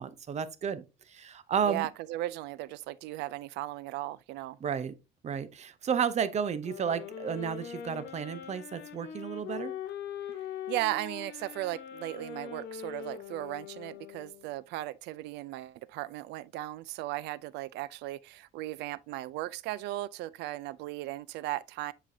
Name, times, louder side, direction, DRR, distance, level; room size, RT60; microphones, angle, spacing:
voice 1, 0.0-1.9 4.6-4.9 5.2-9.7, right 7 dB, 40° right, 0.7 m, -32 dB
voice 2, 1.7-4.6 10.3-10.4 10.7-21.9, right 16 dB, 85° right, 0.4 m, -36 dB
sound 1, 6.6-14.6, left 8 dB, 80° left, 1.1 m, -42 dB
7.5 x 5.0 x 2.7 m
cardioid pair, 110°, 17 cm